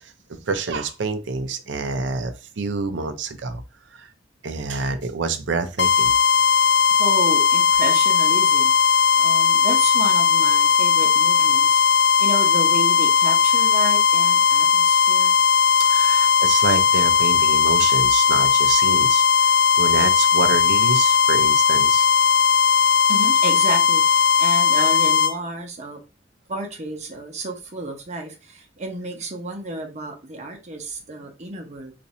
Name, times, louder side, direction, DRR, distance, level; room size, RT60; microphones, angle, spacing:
voice 1, 0.5-3.6 4.0-4.1 4.4-6.1 15.8-19.2 19.8-22.1, right 4 dB, 80° right, 0.5 m, -27 dB
sound 1, 5.8-25.3, left 6 dB, 70° left, 0.6 m, -17 dB
voice 2, 6.9-11.8 12.2-15.4 23.1-26.0 26.5-31.9, right 2 dB, 40° right, 0.8 m, -31 dB
2.6 x 2.5 x 4.2 m
head